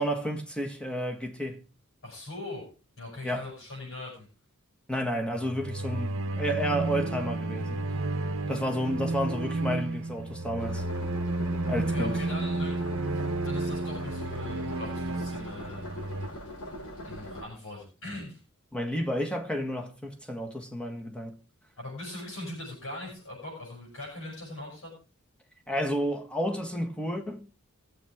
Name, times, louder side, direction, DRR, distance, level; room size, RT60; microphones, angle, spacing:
voice 1, 0.0-1.6 3.2-3.5 4.9-7.8 8.5-10.8 11.7-12.2 18.7-21.4 25.7-27.5, equal, 5° left, 1.6 m, -31 dB
voice 2, 2.0-2.7 3.0-4.3 11.7-12.8 13.1-15.9 16.1-16.3 17.0-18.4 21.8-24.9, left 2 dB, 60° left, 7.6 m, -40 dB
sound 1, 5.3-16.3, right 2 dB, 65° right, 1.0 m, -32 dB
sound 2, 10.6-17.4, equal, 80° left, 3.4 m, -41 dB
21.0 x 7.8 x 3.6 m
head